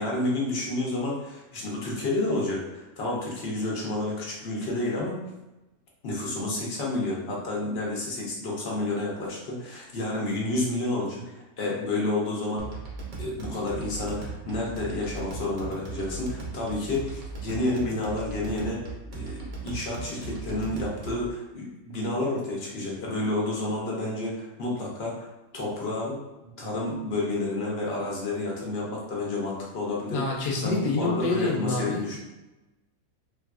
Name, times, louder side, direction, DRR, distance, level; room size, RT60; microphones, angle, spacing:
voice 1, 0.0-5.2 6.0-12.7 13.2-18.8 19.1-25.3 25.5-30.2 30.6-32.2, left 2 dB, 55° left, -3 dB, 0.9 m, -30 dB
sound 1, 12.6-21.3, right 4 dB, 50° right, 0.4 m, -38 dB
voice 2, 30.1-32.2, left 3 dB, 75° left, -2 dB, 0.4 m, -27 dB
3.2 x 2.5 x 2.3 m, 1.0 s
omnidirectional pair, 1.5 m